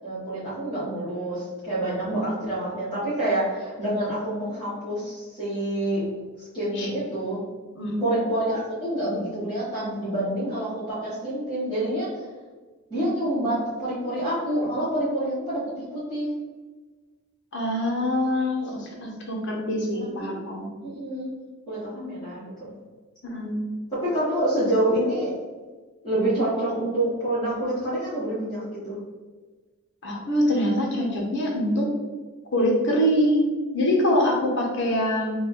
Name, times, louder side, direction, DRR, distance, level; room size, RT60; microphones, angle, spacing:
voice 1, 0.0-6.1 6.4-7.4 8.0-12.2 12.9-16.3 19.9-21.3 21.7-22.7 23.9-25.3 26.0-29.0, right 1 dB, 20° left, -13 dB, 1.3 m, -27 dB
voice 2, 7.8-8.1 17.5-20.7 23.2-23.7 30.0-31.9 32.5-35.3, equal, 55° left, -1 dB, 0.8 m, -24 dB
3.2 x 2.3 x 4.1 m, 1.3 s
head